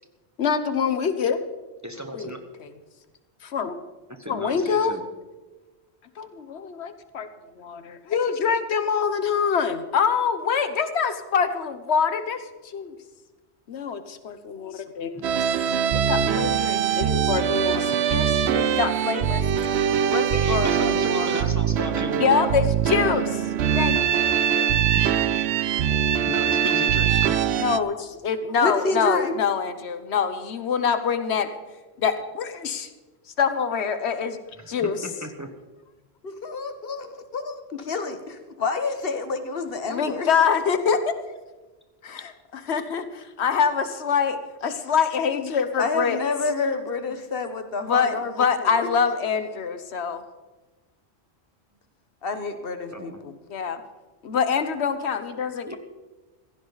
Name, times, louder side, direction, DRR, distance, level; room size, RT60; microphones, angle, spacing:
voice 1, 0.4-1.4 2.1-2.3 2.6-2.7 3.4-3.8 4.3-5.0 6.2-7.3 7.5-12.4 12.7-12.9 13.7-15.3 15.9-19.4 19.7-19.8 22.2-24.7 27.6-31.5 32.0-32.9 33.4-34.4 34.7-35.0 39.9-41.0 42.0-46.2 47.9-50.2 53.5-53.8 54.2-55.8, left 6 dB, 85° left, 10 dB, 1.2 m, -25 dB
voice 2, 1.8-2.4 4.1-5.0 15.1-15.2 20.3-22.5 25.0-25.1 26.3-27.4 34.6-35.5 52.9-53.2 55.7-55.8, equal, 15° right, 5 dB, 1.1 m, -34 dB
sound 1, 15.2-27.8, right 8 dB, 85° right, 0.9 m, -22 dB
voice 3, 20.0-21.5 28.6-29.4 36.2-40.3 45.8-48.9 50.1-50.2 52.2-53.3, left 3 dB, 60° left, 9 dB, 1.3 m, -29 dB
16.0 x 15.0 x 4.0 m, 1.2 s
omnidirectional pair, 1.1 m